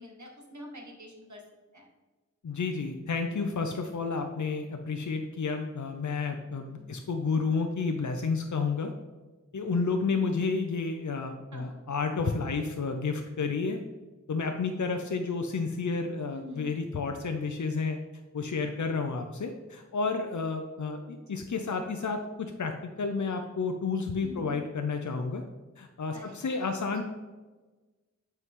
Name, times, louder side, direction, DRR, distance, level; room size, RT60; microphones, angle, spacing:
voice 1, 0.0-1.4 1.7-1.9 6.7-7.0 11.5-11.8 15.0-15.1 16.3-16.8 21.3-21.4 24.2-24.6 26.1-27.0, left 2 dB, 75° right, 1 dB, 1.5 m, -46 dB
voice 2, 2.4-8.9 9.5-13.8 14.3-18.0 18.3-25.4 25.8-27.0, left 4 dB, 80° left, 5 dB, 0.6 m, -31 dB
8.2 x 4.6 x 3.6 m, 1.2 s
wide cardioid pair, 55°, 29 cm